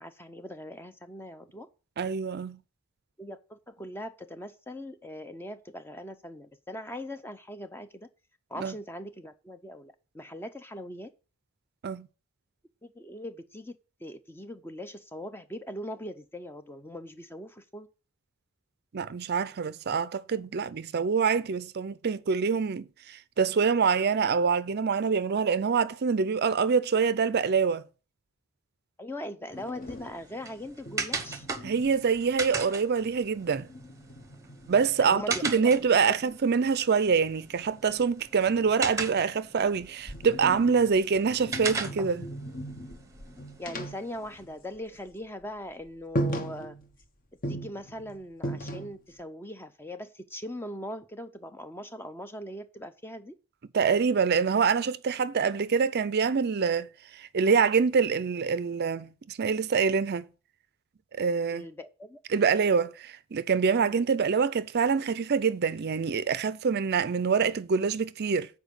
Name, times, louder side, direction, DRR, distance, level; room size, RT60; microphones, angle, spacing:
voice 1, 0.0-1.7 3.2-8.1 8.5-11.1 12.8-13.8 14.0-17.9 29.0-31.5 35.0-35.7 36.1-36.2 43.6-46.8 47.5-53.3 61.5-62.2 63.8-64.0, left 1 dB, 10° left, 0.5 m, -41 dB
voice 2, 2.0-2.6 8.6-8.7 11.8-12.1 18.9-27.8 31.6-33.7 34.7-42.3 53.7-60.3 61.2-61.7 62.3-68.5, right 5 dB, 45° right, 0.4 m, -25 dB
sound 1, 29.5-32.6 33.0-35.9 37.2-39.2 39.7-45.0 45.2-45.4 45.8-45.9 46.1-47.0 47.4-49.1, right 1 dB, 40° left, 0.9 m, -38 dB
sound 2, 29.8-44.4, right 4 dB, 15° right, 0.9 m, -39 dB
7.1 x 4.6 x 6.5 m
head